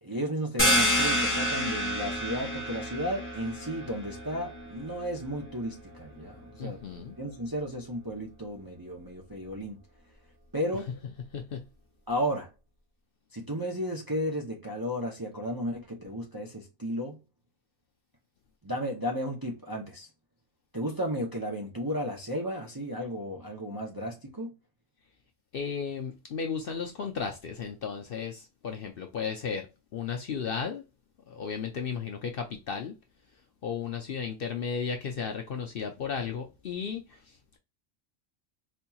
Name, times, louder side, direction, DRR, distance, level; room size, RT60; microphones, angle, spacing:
voice 1, 0.0-6.8 7.2-9.8 10.5-10.9 12.1-12.5 13.3-17.2 18.6-20.1 20.7-24.5, equal, 25° right, 0.5 m, -33 dB
sound 1, 0.6-6.0, equal, 10° left, 1.3 m, -29 dB
voice 2, 6.6-7.1 11.3-11.6 25.5-29.7 29.9-30.8 31.3-32.9 33.6-37.4, left 6 dB, 60° left, 0.7 m, -34 dB
4.3 x 2.8 x 2.3 m
omnidirectional pair, 1.3 m